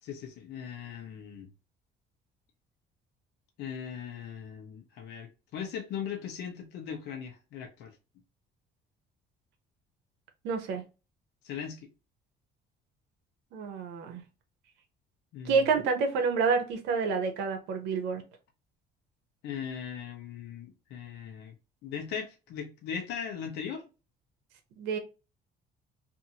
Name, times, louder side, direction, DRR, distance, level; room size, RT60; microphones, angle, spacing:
voice 1, 0.0-1.5 3.6-7.9 11.4-11.9 15.3-15.6 19.4-21.5 21.8-23.8, left 7 dB, 80° left, 0.8 m, -39 dB
voice 2, 10.4-10.8 13.5-14.2 15.4-18.2 24.8-25.0, right 5 dB, 90° right, 0.8 m, -28 dB
2.6 x 2.6 x 2.8 m
cardioid pair, 110°, 17 cm